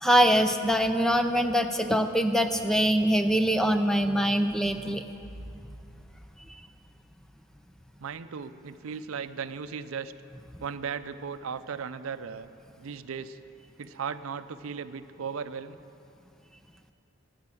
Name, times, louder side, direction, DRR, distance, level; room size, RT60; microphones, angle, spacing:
voice 1, 0.0-5.0, equal, ahead, 7 dB, 0.4 m, -23 dB
voice 2, 8.0-10.1 10.6-12.5 12.8-13.4 13.8-15.8, right 6 dB, 85° right, 13 dB, 0.5 m, -36 dB
13.0 x 8.6 x 7.6 m, 2.6 s
head